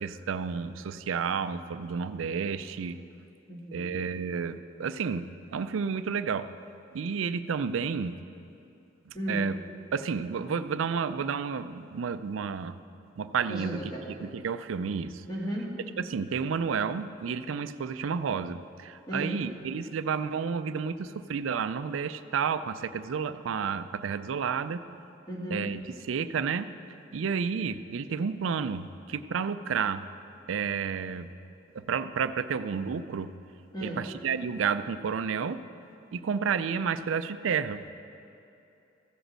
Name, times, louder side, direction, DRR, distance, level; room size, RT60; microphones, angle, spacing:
voice 1, 0.0-3.0 3.7-6.5 6.9-8.1 9.1-9.6 9.9-12.8 13.2-13.8 14.2-15.2 16.0-24.8 25.5-25.8 26.1-26.7 27.1-30.0 30.5-31.3 31.8-33.3 33.8-35.6 36.1-37.8, right 6 dB, 85° right, 12 dB, 0.4 m, -31 dB
voice 2, 3.5-4.0 9.1-9.5 13.5-14.1 15.3-15.8 19.1-19.4 25.3-25.8 33.7-34.1, equal, 20° left, -4 dB, 1.9 m, -34 dB
15.0 x 5.1 x 6.2 m, 2.7 s
head